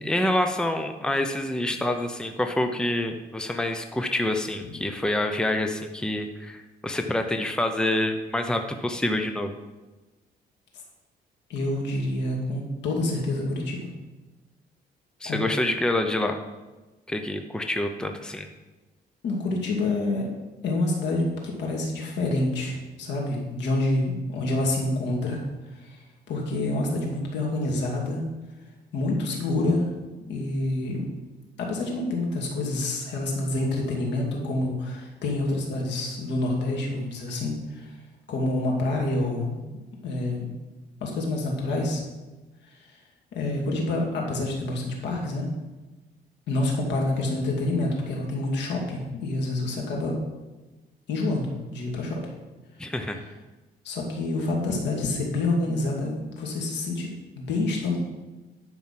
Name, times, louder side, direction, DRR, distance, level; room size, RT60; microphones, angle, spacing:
voice 1, 0.0-9.5 15.2-16.4 17.1-18.5 52.8-53.2, left 1 dB, 5° left, 5 dB, 0.7 m, -27 dB
voice 2, 11.5-13.9 15.2-15.4 19.2-20.3 20.6-25.4 25.7-28.2 28.9-29.9 30.3-31.1 31.6-38.0 38.3-39.6 40.0-40.5 41.0-42.0 42.9-43.0 43.3-45.5 46.5-50.1 51.1-52.2 52.8-52.9 53.8-58.0, left 2 dB, 85° left, -1 dB, 2.7 m, -27 dB
11.0 x 5.9 x 5.9 m, 1.2 s
cardioid pair, 125°, 18 cm